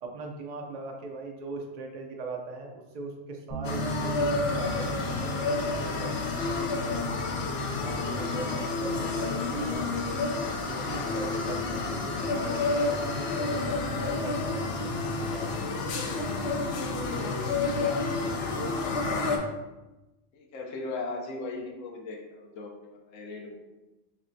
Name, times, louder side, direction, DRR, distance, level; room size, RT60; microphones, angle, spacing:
voice 1, 0.0-7.0 7.7-9.8 10.6-12.4 12.8-15.7, right 3 dB, 85° right, 1 dB, 0.3 m, -40 dB
Bass guitar, 3.5-9.7, right 1 dB, 30° left, 1.0 m, -39 dB
sound 1, 3.6-19.4, left 3 dB, 65° left, 0.7 m, -30 dB
voice 2, 16.5-19.6 20.3-23.6, left 3 dB, 85° left, 1 dB, 1.0 m, -39 dB
5.9 x 2.1 x 2.6 m, 1.0 s
omnidirectional pair, 1.3 m